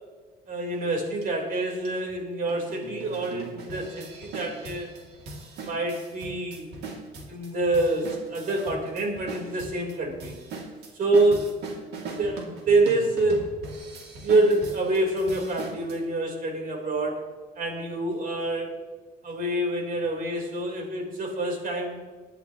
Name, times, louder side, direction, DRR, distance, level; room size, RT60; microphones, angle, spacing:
voice 1, 0.5-4.9 5.6-6.7 7.3-10.4 10.9-11.6 12.2-13.6 14.2-17.3 17.6-18.7 19.2-22.0, right 2 dB, 55° right, 1 dB, 3.7 m, -26 dB
sound 1, 1.2-1.3 1.8-1.9 2.5-16.0, right 3 dB, 80° right, 2.3 m, -40 dB
23.0 x 10.0 x 2.9 m, 1.4 s
cardioid pair, 110°, 17 cm